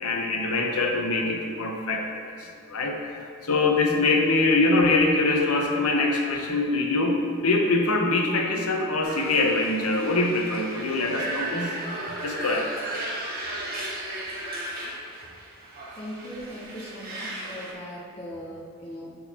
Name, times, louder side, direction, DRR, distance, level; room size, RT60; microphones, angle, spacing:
voice 1, 0.0-2.1 2.4-11.7 12.1-12.7, left 2 dB, 90° left, 2 dB, 0.8 m, -24 dB
sound 1, 9.0-17.7, right 1 dB, 45° right, 1.3 m, -35 dB
voice 2, 16.0-19.2, equal, 30° left, -5 dB, 0.8 m, -39 dB
10.5 x 3.9 x 2.8 m, 2.2 s
head